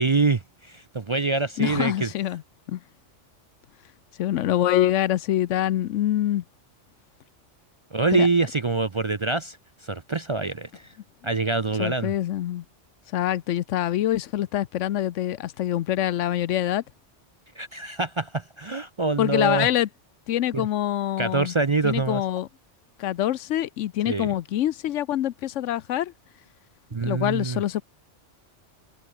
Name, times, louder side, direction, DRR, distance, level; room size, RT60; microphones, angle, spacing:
voice 1, 0.0-2.1 7.9-10.8 11.2-12.1 17.6-19.7 20.5-20.7 21.2-22.2 24.1-24.3 26.9-27.6, right 3 dB, 35° right, 0.5 m, -25 dB
voice 2, 1.6-2.4 2.7-2.8 4.2-6.4 8.1-8.3 11.8-12.6 13.1-16.8 19.2-19.9 20.3-21.5 21.8-22.5 23.0-26.1 27.0-27.8, left 12 dB, 85° left, 1.0 m, -25 dB
omnidirectional pair, 1.2 m